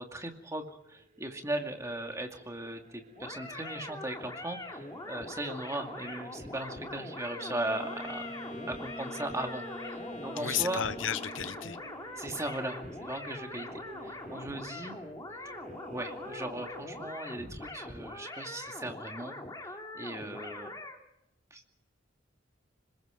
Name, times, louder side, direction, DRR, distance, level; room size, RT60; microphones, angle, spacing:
voice 1, 0.0-8.4 8.7-10.8 12.2-15.0 15.4-15.5 15.9-20.7 21.5-21.7, right 1 dB, 15° right, 2.4 m, -38 dB
sound 1, 0.7-17.1, equal, 45° right, 2.7 m, -51 dB
sound 2, 3.2-21.0, left 2 dB, 20° left, 2.7 m, -43 dB
Wind instrument woodwind instrument, 7.3-11.7, left 1 dB, 40° left, 3.5 m, -44 dB
voice 2, 10.4-11.8, left 9 dB, 80° left, 0.7 m, -33 dB
26.5 x 21.5 x 5.2 m
head